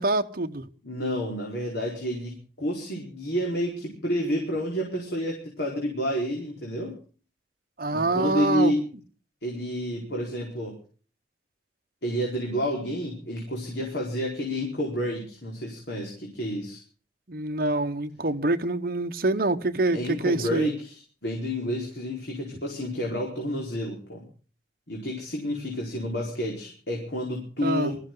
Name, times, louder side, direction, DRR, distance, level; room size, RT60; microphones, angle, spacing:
voice 1, 0.0-0.7 7.8-8.7 17.3-20.7 27.6-28.0, right 2 dB, 55° right, 1.1 m, -26 dB
voice 2, 0.8-7.0 7.9-8.8 9.4-10.8 12.0-16.8 19.9-24.3 24.9-28.0, equal, 70° left, 4.6 m, -29 dB
23.5 x 14.5 x 3.9 m
head